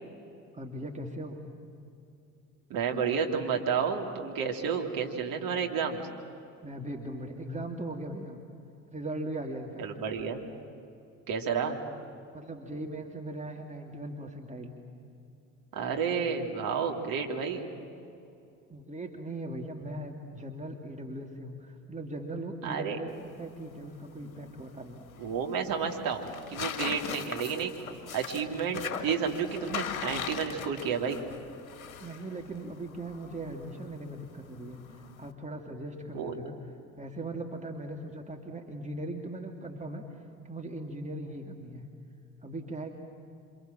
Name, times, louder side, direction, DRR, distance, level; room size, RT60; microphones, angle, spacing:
voice 1, 0.5-1.4 6.6-8.4 8.9-9.9 12.3-14.8 18.7-23.1 23.4-25.1 32.0-36.6 36.9-40.0 40.4-41.9 42.4-43.0, right 1 dB, 15° right, 2 dB, 2.7 m, -39 dB
voice 2, 2.7-6.0 9.8-10.4 11.3-11.8 15.7-17.7 22.6-23.0 25.2-27.7 28.1-31.2 36.1-36.3, right 6 dB, 55° right, 2 dB, 3.2 m, -31 dB
sound 1, 23.1-35.3, left 7 dB, 80° left, 1.6 m, -41 dB
29.0 x 26.0 x 7.7 m, 2.7 s
figure-of-eight pair, 55°, 41 cm